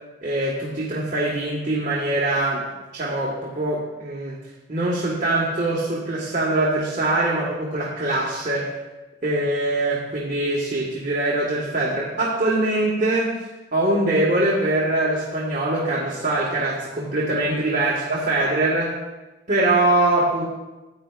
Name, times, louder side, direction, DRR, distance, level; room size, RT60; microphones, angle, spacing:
voice 1, 0.2-2.7 2.9-4.4 4.7-8.7 9.2-13.3 13.7-19.0 19.5-20.4, right 2 dB, 40° right, -5 dB, 1.5 m, -23 dB
14.0 x 9.1 x 2.4 m, 1.1 s
head